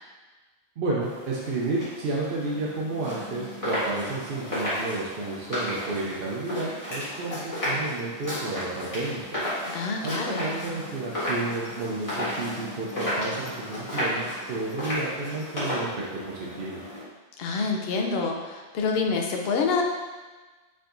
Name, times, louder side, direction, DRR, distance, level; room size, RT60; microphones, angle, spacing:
voice 1, 0.8-9.4 10.0-16.8, right 2 dB, 55° right, -4 dB, 0.7 m, -31 dB
sound 1, 1.0-17.0, left 1 dB, 25° left, 1.6 m, -33 dB
voice 2, 9.7-10.4 17.4-19.8, left 4 dB, 60° left, 1 dB, 0.7 m, -27 dB
4.7 x 3.6 x 2.5 m, 1.3 s
omnidirectional pair, 1.4 m